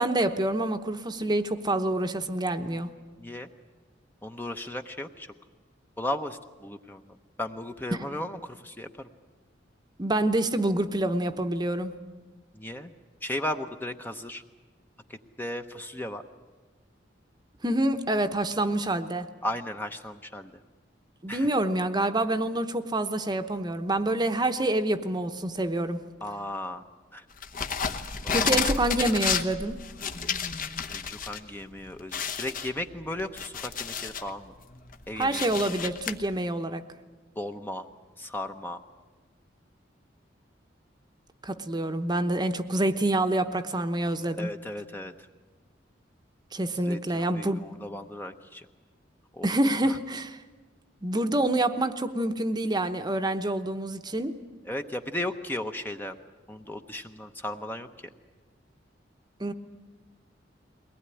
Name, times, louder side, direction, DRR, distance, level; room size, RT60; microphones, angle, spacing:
voice 1, 0.0-2.9 7.9-8.0 10.0-11.9 17.6-19.3 21.2-26.0 28.3-29.8 35.2-36.8 41.4-44.5 46.5-47.6 49.4-50.4 51.0-54.3 59.4-59.5, right 1 dB, 25° right, 9 dB, 0.9 m, -27 dB
voice 2, 4.2-5.3 6.0-7.0 7.4-9.1 12.5-12.9 13.2-14.4 15.4-16.2 19.4-20.5 21.3-21.5 26.2-26.8 27.1-27.2 28.2-28.6 30.9-34.5 35.1-35.6 37.4-37.9 38.2-38.8 44.4-45.1 46.9-48.7 49.3-49.5 54.7-56.2 56.5-57.9, left 1 dB, 10° left, 6 dB, 0.8 m, -35 dB
sound 1, 27.4-31.4 31.7-31.8 32.1-34.3 34.7-36.1, left 6 dB, 50° left, 1.0 m, -31 dB
22.0 x 19.0 x 9.8 m, 1.3 s
head